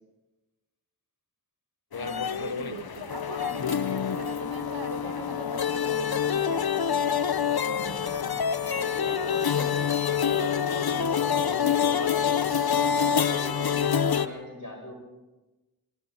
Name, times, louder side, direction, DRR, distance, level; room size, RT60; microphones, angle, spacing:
sound 1, 1.9-14.3, left 8 dB, 90° left, 0.8 m, -26 dB
voice 1, 2.0-7.2, right 3 dB, 85° right, 7 dB, 1.5 m, -40 dB
voice 2, 7.8-14.9, left 1 dB, 55° left, 1 dB, 8.0 m, -39 dB
28.0 x 23.5 x 4.3 m, 1.1 s
wide cardioid pair, 40°, 36 cm